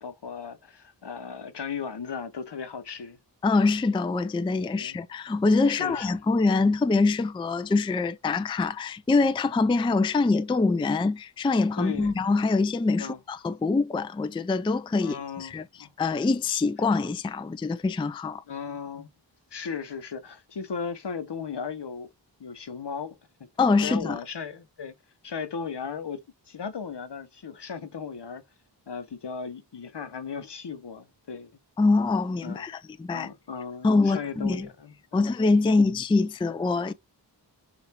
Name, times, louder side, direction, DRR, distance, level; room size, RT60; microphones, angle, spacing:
voice 1, 0.0-3.2 4.8-5.0 5.7-6.2 11.8-12.1 13.0-13.2 15.0-15.9 18.5-19.1 19.5-22.1 22.4-23.2 23.8-24.9 25.2-28.4 28.9-31.5 32.4-32.6 33.1-35.3 35.6-35.8, left 6 dB, 65° left, 0.9 m, -36 dB
voice 2, 3.4-15.6 16.0-18.4 23.6-24.2 31.8-33.3 33.8-34.7 35.1-36.9, left 3 dB, 15° left, 0.3 m, -24 dB
6.7 x 2.5 x 3.0 m
wide cardioid pair, 55°, 44 cm